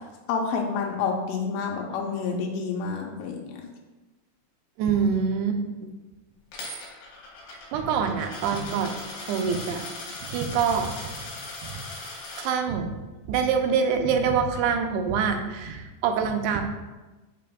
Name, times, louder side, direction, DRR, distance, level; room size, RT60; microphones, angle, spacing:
voice 1, 0.3-3.6, left 5 dB, 90° left, 1 dB, 2.9 m, -28 dB
voice 2, 4.8-5.6 7.7-9.8 10.2-10.9 11.6-11.7 12.4-12.9 13.3-16.6, right 6 dB, 80° right, 5 dB, 2.5 m, -25 dB
Coin (dropping), 6.5-12.5, left 2 dB, 70° left, 2.7 m, -39 dB
8.4 x 5.0 x 2.3 m, 1.1 s
omnidirectional pair, 4.8 m